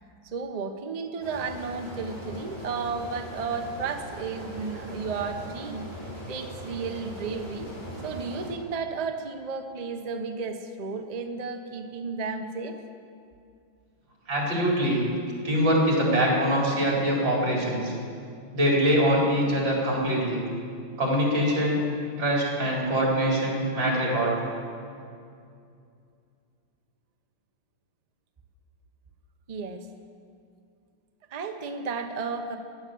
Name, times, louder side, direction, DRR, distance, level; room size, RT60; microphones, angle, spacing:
voice 1, 0.2-5.9 6.3-7.7 8.0-12.8 29.5-29.9 31.3-32.6, right 4 dB, 75° right, 5 dB, 0.3 m, -33 dB
sound 1, 1.2-8.5, equal, 50° left, 5.7 m, -40 dB
voice 2, 14.3-15.0 15.4-17.9 18.5-20.4 21.0-21.8 22.2-24.3, equal, 55° right, -3 dB, 4.7 m, -23 dB
17.0 x 11.0 x 7.7 m, 2.4 s
omnidirectional pair, 2.4 m